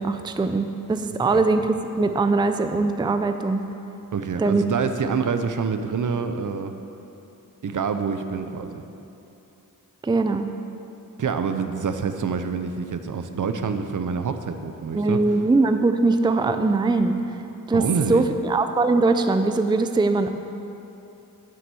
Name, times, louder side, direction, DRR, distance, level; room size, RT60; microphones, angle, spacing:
voice 1, 0.0-3.7 4.4-4.6 10.0-10.5 14.9-17.4 17.7-20.3, right 3 dB, 15° right, 8 dB, 0.4 m, -21 dB
voice 2, 4.1-6.7 7.6-8.8 11.2-15.4 17.7-18.2, right 5 dB, 65° right, 8 dB, 0.7 m, -26 dB
9.1 x 7.8 x 6.9 m, 2.8 s
wide cardioid pair, 105°, 34 cm